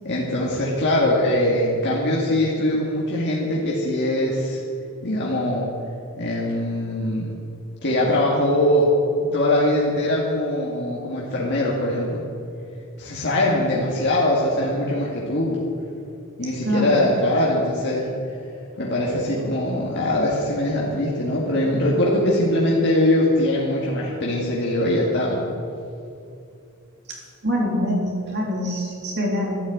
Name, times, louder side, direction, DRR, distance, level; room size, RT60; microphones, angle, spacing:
voice 1, 0.0-4.6 5.0-5.7 6.2-7.3 7.8-8.9 9.3-12.2 13.0-15.6 16.4-18.1 18.8-25.5, left 1 dB, 50° left, -5 dB, 2.2 m, -22 dB
voice 2, 16.6-17.1 27.1-27.2 27.4-29.6, equal, 50° right, -2 dB, 3.7 m, -24 dB
13.0 x 10.0 x 8.8 m, 2.6 s
head